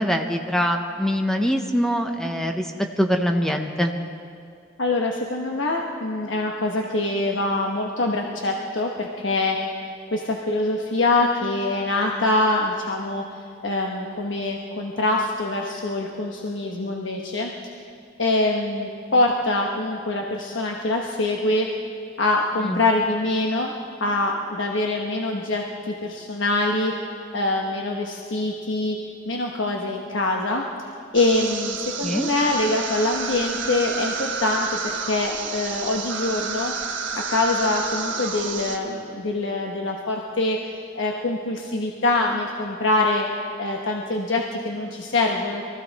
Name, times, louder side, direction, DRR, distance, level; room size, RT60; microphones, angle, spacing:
voice 1, 0.0-2.7 3.0-3.9 22.6-22.8 32.0-32.3, equal, 5° left, 4 dB, 0.7 m, -23 dB
voice 2, 4.8-9.6 10.1-13.2 13.6-17.5 18.2-21.7 22.2-23.7 24.0-26.9 27.3-29.0 29.3-30.6 31.1-36.7 37.1-43.2 43.6-45.6, left 2 dB, 90° left, 0 dB, 1.1 m, -24 dB
sound 1, 31.1-38.8, right 6 dB, 85° right, 1.4 m, -30 dB
23.0 x 15.0 x 4.1 m, 2.3 s
head